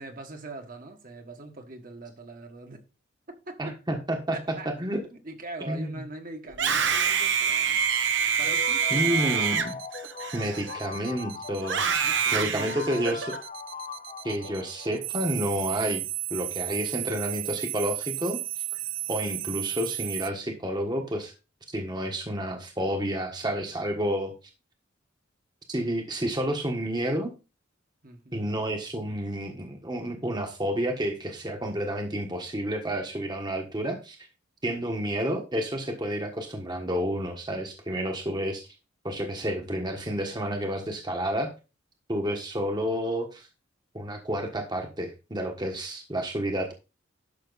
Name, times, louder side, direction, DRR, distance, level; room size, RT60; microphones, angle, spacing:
voice 1, 0.0-2.8 3.3-3.6 4.1-7.9 8.4-9.1 12.0-13.2 28.0-28.4, right 2 dB, 45° right, 1.7 m, -42 dB
voice 2, 3.6-5.0 5.7-6.0 8.9-9.7 10.3-11.8 12.3-13.3 14.2-16.0 16.3-18.6 19.1-21.3 21.7-24.3 25.7-27.3 28.3-34.3 34.6-38.7 39.0-41.5 42.1-43.5 43.9-46.7, right 1 dB, 20° right, 1.4 m, -30 dB
Screaming, 6.5-11.0 11.6-13.4, right 7 dB, 65° right, 1.2 m, -26 dB
sound 1, 7.8-20.3, right 18 dB, 80° right, 0.5 m, -35 dB
sound 2, 8.4-15.2, left 5 dB, 35° left, 0.7 m, -40 dB
12.0 x 6.3 x 4.0 m
head